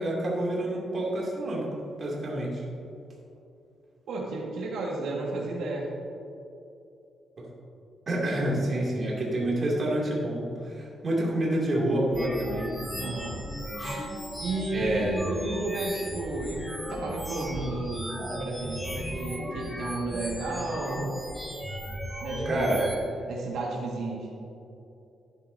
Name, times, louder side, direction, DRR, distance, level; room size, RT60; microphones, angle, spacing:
voice 1, 0.0-1.6 2.0-2.6 8.1-12.7 13.8-14.1 14.7-15.2 22.5-22.8, right 1 dB, 35° right, -5 dB, 2.4 m, -28 dB
voice 2, 4.1-5.9 13.0-13.4 14.4-21.1 22.2-22.7 23.2-24.3, right 2 dB, 80° right, -3 dB, 1.6 m, -33 dB
sound 1, 12.1-23.0, equal, 5° left, 1.1 m, -36 dB
12.0 x 9.9 x 2.6 m, 2.8 s
cardioid pair, 160°, 0 cm